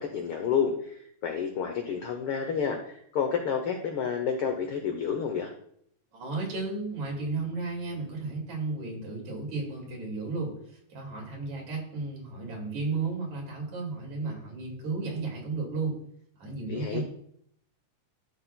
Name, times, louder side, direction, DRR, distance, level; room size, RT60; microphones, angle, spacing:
voice 1, 0.0-5.5 16.7-17.0, left 7 dB, 75° left, 4 dB, 1.2 m, -30 dB
voice 2, 6.1-16.0 16.4-17.0, right 3 dB, 65° right, -1 dB, 3.5 m, -33 dB
13.0 x 6.8 x 2.3 m, 0.66 s
omnidirectional pair, 3.6 m